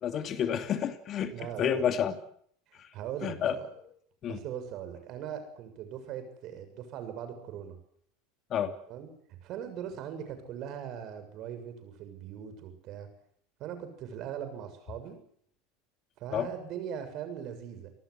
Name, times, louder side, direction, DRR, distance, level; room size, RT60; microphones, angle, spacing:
voice 1, 0.0-1.3 1.6-2.1 3.2-3.5 4.2-4.4 8.5-8.7 16.3-16.5, left 9 dB, 40° left, 9 dB, 2.8 m, -29 dB
voice 2, 1.3-1.9 2.7-3.7 4.3-7.8 8.9-9.1 9.4-13.1 13.6-15.2 16.2-17.9, right 9 dB, 50° right, 9 dB, 7.0 m, -40 dB
27.0 x 19.0 x 8.0 m, 0.65 s
hypercardioid pair, 85°, 0 cm